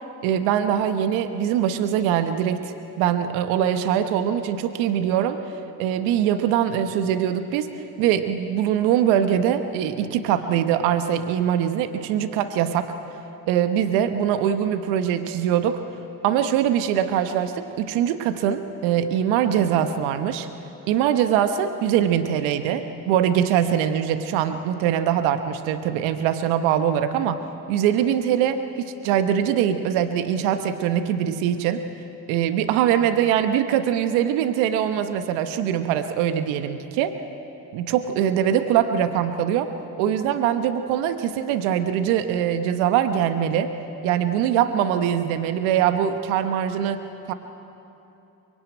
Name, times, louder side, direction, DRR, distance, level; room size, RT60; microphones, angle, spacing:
voice 1, 0.2-2.6 3.0-5.4 5.8-7.7 8.0-12.9 13.5-15.8 16.2-20.5 20.9-27.4 27.7-31.8 32.3-37.1 37.7-39.7 40.0-43.7 44.0-47.0 47.3-47.4, right 9 dB, 85° right, 9 dB, 1.1 m, -22 dB
23.5 x 22.0 x 9.1 m, 2.9 s
hypercardioid pair, 55°, 46 cm